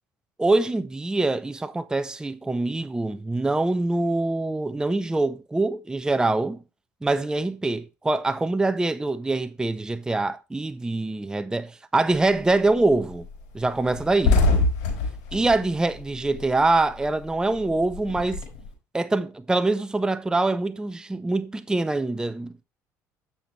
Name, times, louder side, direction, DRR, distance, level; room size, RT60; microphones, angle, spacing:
voice 1, 0.4-6.6 7.0-13.3 13.5-14.4 15.3-18.4 18.9-22.5, right 2 dB, 10° right, 0.5 m, -24 dB
sound 1, 12.1-12.5 12.9-13.0 13.3-13.4 13.7-16.7 17.0-18.7, left 3 dB, 85° left, 4.2 m, -24 dB
9.8 x 5.9 x 3.2 m
supercardioid pair, 85°, 7 cm